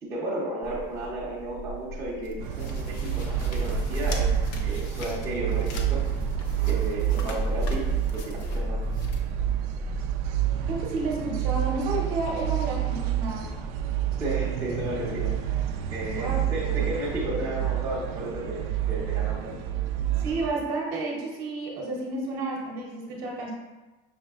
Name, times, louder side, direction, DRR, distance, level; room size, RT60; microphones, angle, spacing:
voice 1, 0.0-4.3 4.6-6.0 6.7-7.8 8.1-8.8 14.2-15.4 15.9-19.5, right 1 dB, 15° right, -8 dB, 0.7 m, -33 dB
sound 1, 0.6-10.8, equal, 45° left, 0.5 m, -41 dB
sound 2, 2.4-20.5, right 8 dB, 60° right, 0.4 m, -28 dB
voice 2, 10.7-13.5 16.1-16.4 16.7-16.9 20.2-23.5, right 2 dB, 45° right, -2 dB, 0.9 m, -31 dB
5.7 x 3.2 x 2.4 m, 1.2 s
cardioid pair, 175°, 21 cm